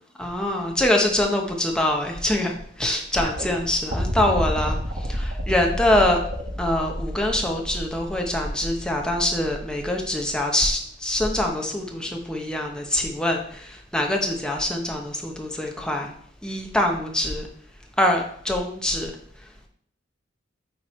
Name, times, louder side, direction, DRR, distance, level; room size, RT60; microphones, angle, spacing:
voice 1, 0.2-2.5 2.8-4.8 5.1-6.2 6.6-16.1 16.4-17.5 18.0-19.1, left 1 dB, 5° left, 1 dB, 0.9 m, -24 dB
sound 1, 3.2-10.3 11.5-11.6, equal, 45° right, 1.1 m, -31 dB
9.4 x 3.3 x 4.3 m, 0.62 s
head